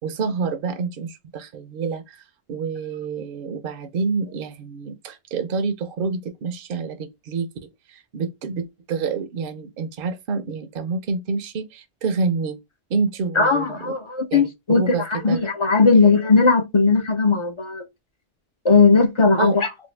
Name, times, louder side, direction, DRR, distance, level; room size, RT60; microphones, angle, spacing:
voice 1, 0.0-12.6 12.9-13.9 14.3-15.4 15.9-16.1 19.4-19.6, right 4 dB, 65° right, 0.7 m, -28 dB
voice 2, 13.4-17.8 18.6-19.7, left 4 dB, 45° left, 0.4 m, -18 dB
2.7 x 2.6 x 3.1 m
omnidirectional pair, 1.1 m